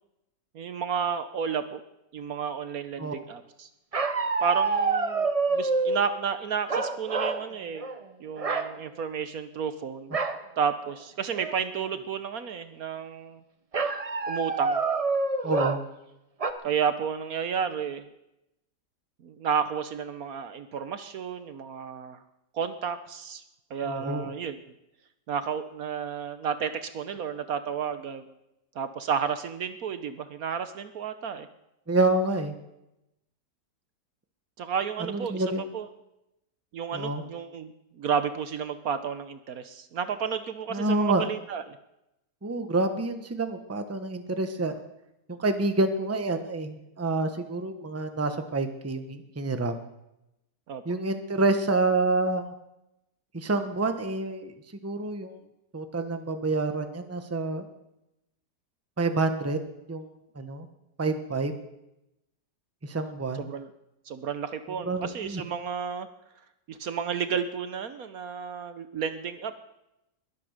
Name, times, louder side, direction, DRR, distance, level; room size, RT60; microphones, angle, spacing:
voice 1, 0.5-1.8 2.1-3.7 4.4-7.8 8.2-10.2 10.6-13.4 14.3-14.8 16.6-18.1 19.2-22.2 22.5-23.4 23.7-24.6 25.3-28.2 28.7-31.5 34.6-35.4 35.7-35.9 36.7-41.6 50.7-50.8 63.4-63.7 64.1-66.1 66.7-69.6, right 7 dB, 65° right, 10 dB, 1.2 m, -32 dB
Dog Full Suite, 3.9-6.0 6.7-7.4 7.8-8.0 8.4-8.7 10.1-10.4 10.9-11.0 11.3-11.8 13.7-15.8 16.4-16.5, right 4 dB, 35° right, 0.6 m, -27 dB
voice 2, 15.4-15.8 23.8-24.3 31.9-32.5 35.0-35.6 36.9-37.2 40.7-41.3 42.4-44.8 45.4-49.8 50.8-52.5 53.3-54.5 54.8-55.4 55.7-57.6 59.0-59.6 59.9-60.1 60.3-60.7 61.0-61.6 62.8-63.5 64.9-65.4, right 2 dB, 10° right, 7 dB, 0.9 m, -28 dB
21.5 x 8.6 x 6.5 m, 0.89 s
omnidirectional pair, 1.8 m